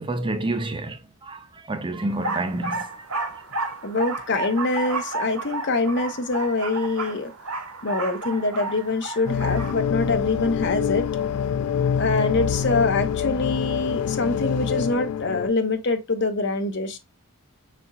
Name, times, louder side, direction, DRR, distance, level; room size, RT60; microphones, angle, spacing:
voice 1, 0.0-3.1 3.3-3.4, right 2 dB, 20° right, 0.5 m, -29 dB
sound 1, 2.1-9.7, right 3 dB, 75° right, 1.1 m, -32 dB
voice 2, 3.8-7.3 7.8-11.1 12.0-17.0, left 3 dB, 50° left, 0.9 m, -24 dB
sound 2, 9.3-15.5, left 7 dB, 85° left, 0.3 m, -25 dB
5.3 x 4.2 x 2.3 m
head